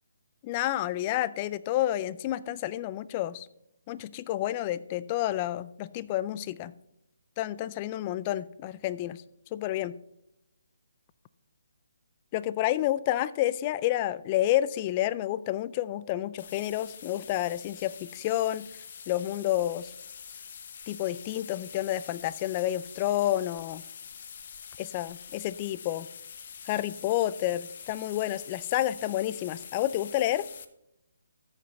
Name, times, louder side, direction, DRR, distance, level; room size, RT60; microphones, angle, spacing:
voice 1, 0.4-3.5 3.9-6.7 7.4-9.2 9.5-10.0 12.3-18.7 19.1-19.9 20.9-23.8 24.8-26.1 26.7-30.5, left 13 dB, 30° left, 18 dB, 0.4 m, -29 dB
sound 1, 16.4-30.6, left 7 dB, 50° left, 0.7 m, -45 dB
13.5 x 5.6 x 4.1 m, 0.82 s
figure-of-eight pair, 145°, 0 cm